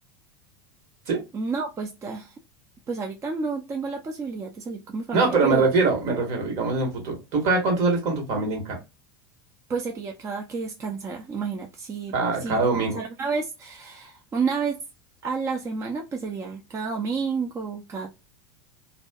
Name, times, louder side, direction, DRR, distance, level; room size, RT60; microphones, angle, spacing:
voice 1, 1.3-2.3 2.9-5.7 9.7-12.1 12.4-12.6 12.9-14.8 15.2-18.1, right 5 dB, 25° right, 0.4 m, -30 dB
voice 2, 5.1-8.8 12.1-13.0, right 3 dB, 55° right, 1.2 m, -23 dB
2.5 x 2.3 x 2.2 m
hypercardioid pair, 90°, 13 cm